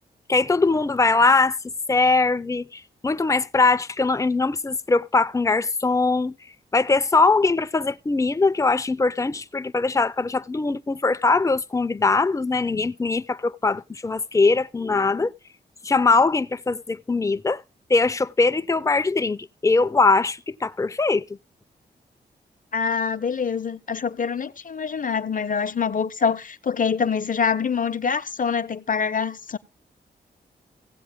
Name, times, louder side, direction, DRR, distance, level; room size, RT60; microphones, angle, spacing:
voice 1, 0.3-1.6 1.9-6.4 6.7-15.3 15.8-17.6 17.9-21.2, left 3 dB, 15° left, 0.6 m, -21 dB
voice 2, 22.7-29.6, left 6 dB, 50° left, 0.8 m, -25 dB
16.5 x 7.7 x 3.6 m
cardioid pair, 55°, 18 cm